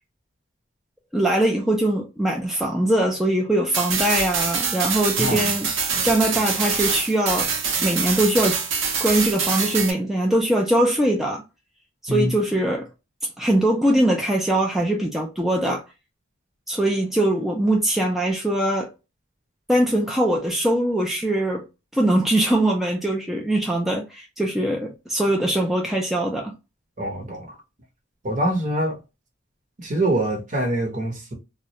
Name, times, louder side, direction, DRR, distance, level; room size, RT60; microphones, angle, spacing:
voice 1, 1.1-5.7 6.0-7.5 7.8-8.6 9.0-11.4 12.0-12.9 13.4-15.8 16.7-18.9 19.7-21.6 21.9-26.5, right 1 dB, ahead, 0.4 m, -22 dB
sound 1, 3.7-9.9, right 5 dB, 65° right, 0.7 m, -25 dB
voice 2, 5.2-5.5 5.9-6.0 12.1-12.3 27.0-27.6 28.2-29.0 29.8-31.3, right 1 dB, 40° right, 0.8 m, -24 dB
2.3 x 2.1 x 2.8 m
head